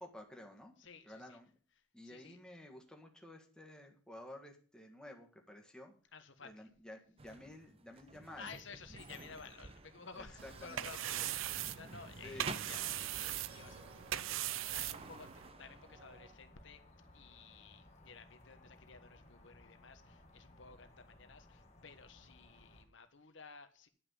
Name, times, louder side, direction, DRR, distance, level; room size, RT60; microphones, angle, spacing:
voice 1, 0.0-0.7 1.0-1.5 1.9-5.9 6.4-8.5 10.2-10.9 12.2-12.5, left 1 dB, 5° left, 2 dB, 1.7 m, -52 dB
voice 2, 0.8-1.4 2.0-2.4 6.1-6.7 8.4-16.8 17.1-23.9, left 5 dB, 60° left, 9 dB, 1.3 m, -55 dB
sound 1, 7.2-16.3, right 3 dB, 30° right, 0.8 m, -52 dB
sound 2, 10.1-22.8, left 1 dB, 35° left, 2.0 m, -61 dB
sound 3, 10.4-15.5, right 12 dB, 75° right, 0.5 m, -40 dB
10.5 x 5.8 x 8.3 m, 0.42 s
head